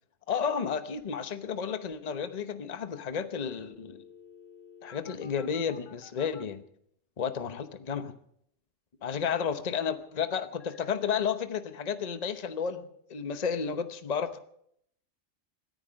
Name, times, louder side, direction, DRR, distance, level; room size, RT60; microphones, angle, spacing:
voice 1, 0.3-4.0 4.8-6.6 7.2-8.1 9.0-14.4, left 7 dB, 35° left, 0.9 m, -32 dB
sound 1, 3.3-6.4 10.1-11.0, left 6 dB, 70° left, 1.6 m, -53 dB
26.5 x 10.5 x 5.2 m
omnidirectional pair, 1.4 m